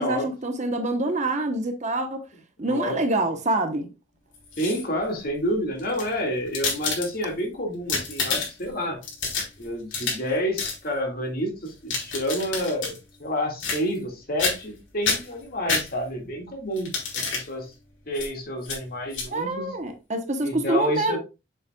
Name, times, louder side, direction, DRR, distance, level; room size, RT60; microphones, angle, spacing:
voice 1, 0.0-2.2 2.6-3.9 19.3-21.2, right 2 dB, 35° right, 1.0 m, -26 dB
voice 2, 2.6-3.3 4.6-9.0 9.6-17.7 18.1-19.7 20.4-21.2, equal, 45° left, 2.1 m, -29 dB
sound 1, 4.3-5.0 5.8-7.4 7.7-8.7 9.0-10.3 10.6-10.8 11.7-13.0 13.6-14.1 14.4-14.8 15.0-16.3 16.8-17.5 18.1-18.3 18.6-18.8 19.1-19.3, left 5 dB, 70° left, 3.5 m, -29 dB
7.3 x 7.2 x 2.4 m
head